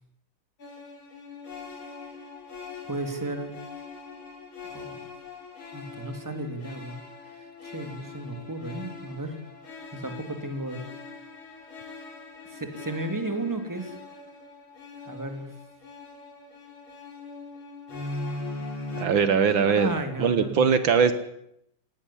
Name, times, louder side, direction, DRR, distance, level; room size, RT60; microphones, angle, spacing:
sound 1, 0.6-19.1, left 3 dB, 70° left, 4.5 m, -41 dB
voice 1, 2.9-3.5 4.7-5.0 5.7-7.0 7.6-9.4 9.9-10.9 12.5-14.0 15.0-15.5 19.6-20.7, right 2 dB, 10° right, 6 dB, 2.4 m, -33 dB
voice 2, 19.0-19.9 20.2-21.1, right 6 dB, 70° right, 11 dB, 1.9 m, -21 dB
18.5 x 16.5 x 10.0 m, 0.78 s
omnidirectional pair, 2.3 m